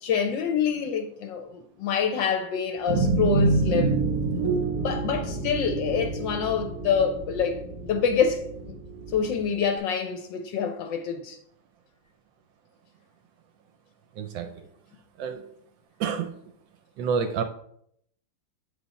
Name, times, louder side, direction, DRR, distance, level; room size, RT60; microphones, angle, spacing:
voice 1, 0.0-3.9 4.8-8.8 9.1-11.4, left 6 dB, 75° left, 1.2 m, -26 dB
sound 1, 2.9-9.4, right 3 dB, 20° right, 1.2 m, -27 dB
voice 2, 14.2-14.5 15.2-15.4 16.0-16.4 17.0-17.4, right 6 dB, 75° right, 1.2 m, -28 dB
7.9 x 3.5 x 4.0 m
omnidirectional pair, 2.4 m